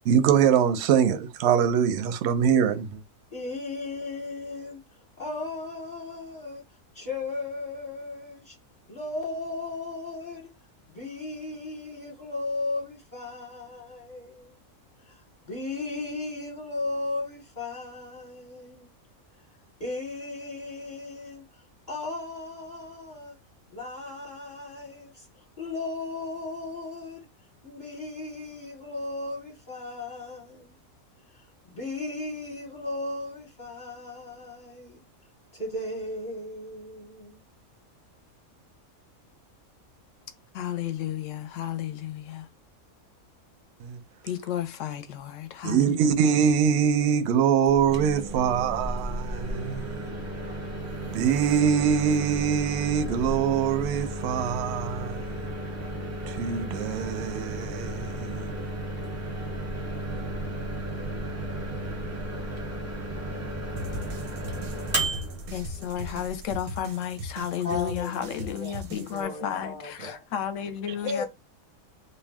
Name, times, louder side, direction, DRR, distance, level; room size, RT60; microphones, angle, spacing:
voice 1, 0.0-3.0 43.8-44.0 45.6-50.1 51.0-55.5 56.3-58.5, right 8 dB, 65° right, 0.7 m, -24 dB
voice 2, 3.3-6.6 6.9-8.6 8.9-10.5 10.9-14.6 15.0-18.9 19.8-23.3 23.7-27.2 27.6-30.7 31.3-35.0 35.5-37.4 67.6-70.1 71.0-71.2, left 2 dB, 40° left, 0.9 m, -36 dB
voice 3, 40.5-42.5 44.2-46.0 65.5-71.2, left 10 dB, 70° left, 0.9 m, -32 dB
Microwave oven, 47.7-66.5, right 1 dB, 20° right, 0.4 m, -34 dB
sound 1, 63.8-69.2, right 1 dB, 90° right, 1.1 m, -39 dB
2.6 x 2.2 x 3.4 m
omnidirectional pair, 1.5 m